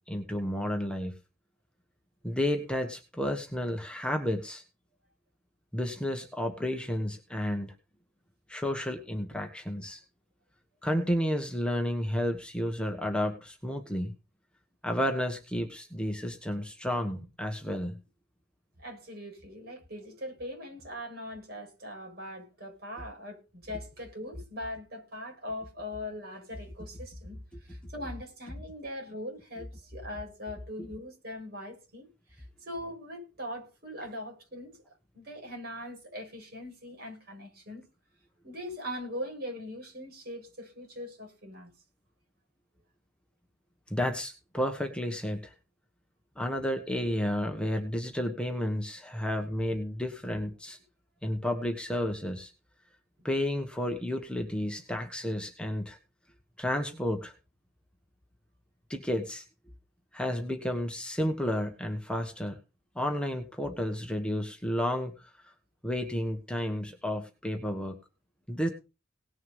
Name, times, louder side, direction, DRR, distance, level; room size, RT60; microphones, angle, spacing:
voice 1, 0.1-1.1 2.2-4.6 5.7-7.7 8.5-10.0 10.8-14.1 14.8-18.0 43.9-45.5 46.4-50.8 51.2-52.5 53.2-56.0 56.6-57.3 58.9-59.4 60.1-62.6 62.9-65.3 65.8-67.9 68.5-68.7, left 1 dB, 5° left, 1.3 m, -31 dB
voice 2, 18.8-27.4 27.7-34.8 35.1-37.8 38.4-41.7, left 1 dB, 50° right, 6.7 m, -41 dB
18.5 x 6.6 x 5.5 m
head